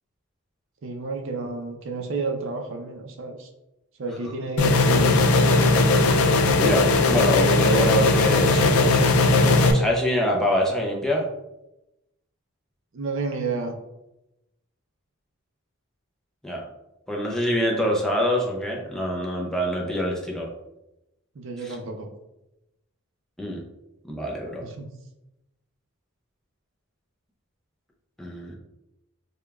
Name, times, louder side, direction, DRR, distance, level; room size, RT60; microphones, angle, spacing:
voice 1, 0.8-3.5 4.0-5.3 12.9-13.7 21.4-22.1 24.6-24.9, right 3 dB, 60° right, 3 dB, 0.5 m, -31 dB
sound 1, 4.6-9.7, left 3 dB, 75° left, 0.4 m, -18 dB
voice 2, 6.6-11.3 16.4-16.6 17.1-20.5 21.6-21.8 23.4-23.6 24.0-24.6 28.2-28.6, equal, 5° left, -2 dB, 0.4 m, -25 dB
4.9 x 2.2 x 2.3 m, 0.91 s
head